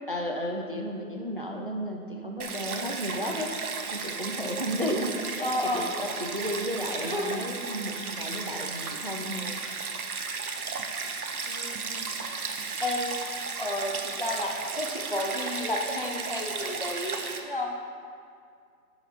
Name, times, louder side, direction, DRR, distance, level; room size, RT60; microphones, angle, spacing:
voice 1, 0.1-3.6 3.9-9.6, equal, 35° right, 2 dB, 0.5 m, -33 dB
Stream, 2.4-17.4, right 5 dB, 70° right, 1.0 m, -34 dB
voice 2, 5.4-5.8 7.0-7.4 11.5-13.2 13.6-17.7, left 1 dB, 35° left, 1 dB, 0.6 m, -32 dB
10.5 x 5.7 x 4.3 m, 2.2 s
hypercardioid pair, 175°, 46 cm